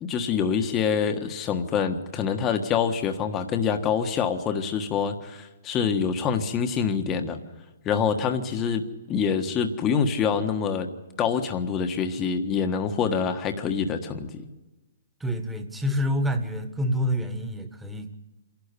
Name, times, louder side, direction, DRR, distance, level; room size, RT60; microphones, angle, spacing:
voice 1, 0.0-7.4 7.8-10.9 11.2-14.4, left 6 dB, 20° left, 6 dB, 1.4 m, -26 dB
voice 2, 15.2-18.2, equal, 5° right, 8 dB, 1.7 m, -27 dB
26.5 x 12.0 x 9.8 m, 1.1 s
hypercardioid pair, 140°, 0 cm